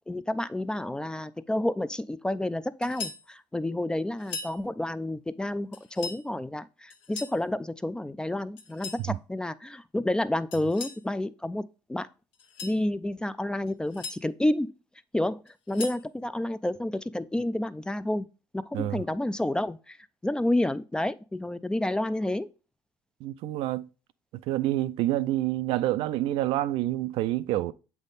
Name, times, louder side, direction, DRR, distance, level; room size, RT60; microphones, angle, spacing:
voice 1, 0.1-12.1 12.6-14.7 15.1-18.3 18.5-20.0 20.2-22.5, left 1 dB, 10° left, 0.3 m, -30 dB
sound 1, 2.8-3.2 4.2-4.6 5.7-6.2 6.9-7.4 8.6-9.0 10.5-11.0 12.3-12.8 13.7-14.2 15.5-16.0, left 4 dB, 70° left, 1.1 m, -39 dB
voice 2, 23.2-23.9 24.5-27.7, right 14 dB, 70° right, 0.4 m, -27 dB
7.2 x 3.5 x 4.0 m
supercardioid pair, 95°, 10 cm